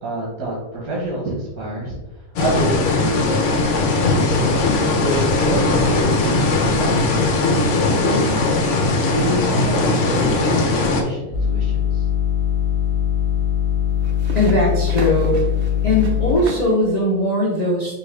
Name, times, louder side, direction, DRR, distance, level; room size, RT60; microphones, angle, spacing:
voice 1, 0.0-1.9 2.4-4.4 5.0-7.1 7.6-8.6 9.0-12.1, right 1 dB, 85° right, -4 dB, 1.6 m, -27 dB
sound 1, 2.4-11.0, left 3 dB, 60° left, 0.9 m, -19 dB
sound 2, 9.8-10.2 13.9-16.8, right 2 dB, 60° right, 0.6 m, -34 dB
sound 3, 11.3-16.4, left 10 dB, 30° right, 1.5 m, -21 dB
voice 2, 14.3-15.4 15.8-18.0, left 1 dB, 40° left, -5 dB, 0.6 m, -19 dB
5.4 x 2.5 x 3.2 m, 1.1 s
omnidirectional pair, 1.6 m